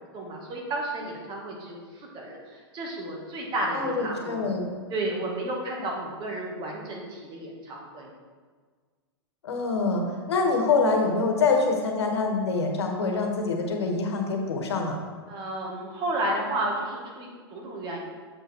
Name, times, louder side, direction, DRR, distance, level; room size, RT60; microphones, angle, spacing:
voice 1, 0.0-4.5 4.9-8.1 15.3-18.0, right 1 dB, 35° right, -1 dB, 2.0 m, -32 dB
voice 2, 3.7-4.6 9.4-10.0 10.3-15.0, left 4 dB, 85° left, 2 dB, 1.5 m, -25 dB
7.4 x 5.1 x 4.5 m, 1.5 s
hypercardioid pair, 115°, 14 cm